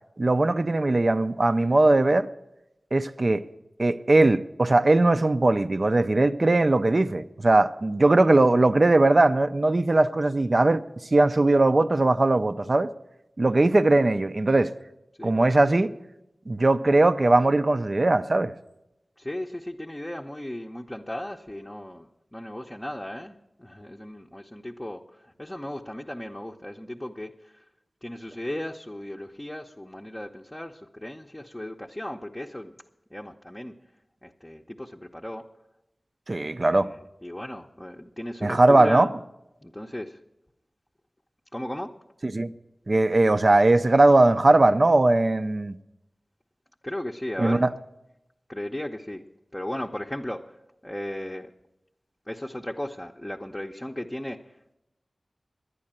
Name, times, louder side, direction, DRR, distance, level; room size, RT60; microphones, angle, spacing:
voice 1, 0.2-2.3 2.9-3.5 3.8-10.8 11.1-12.9 13.4-14.7 15.2-15.9 16.5-18.5 36.3-36.9 38.4-39.1 42.3-42.5 42.9-45.8 47.4-47.7, right 2 dB, 50° right, 0.5 m, -20 dB
voice 2, 15.2-15.6 19.2-27.6 28.0-32.8 33.1-33.8 34.2-35.5 36.3-39.1 39.6-40.2 41.5-42.0 46.8-47.7 48.5-49.2 49.5-51.5 52.3-54.6, left 1 dB, 15° left, 0.7 m, -36 dB
11.0 x 9.6 x 8.8 m
wide cardioid pair, 55°, 0 cm